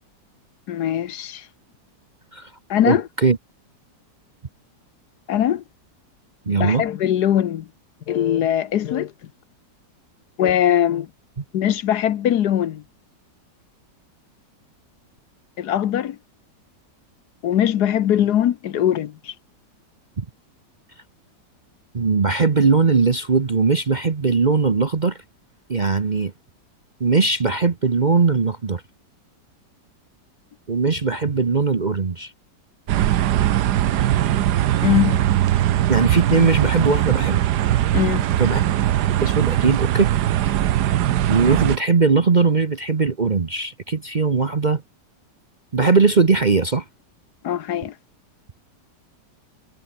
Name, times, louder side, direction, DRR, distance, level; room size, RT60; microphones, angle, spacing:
voice 1, 0.7-1.5 2.7-3.1 5.3-5.6 6.5-7.7 8.1-9.1 10.4-11.1 11.5-12.8 15.6-16.2 17.4-19.3 34.8-35.3 37.9-38.3 47.4-47.9, left 10 dB, 70° left, 1.4 m, -21 dB
voice 2, 6.5-6.8 20.2-20.3 21.9-25.2 25.7-26.3 27.0-28.8 30.7-32.3 35.9-37.4 38.4-38.6 39.2-40.1 41.3-44.8 45.7-46.8, right 4 dB, 35° right, 0.9 m, -19 dB
sound 1, 32.9-41.8, right 12 dB, 70° right, 1.3 m, -20 dB
omnidirectional pair, 1.9 m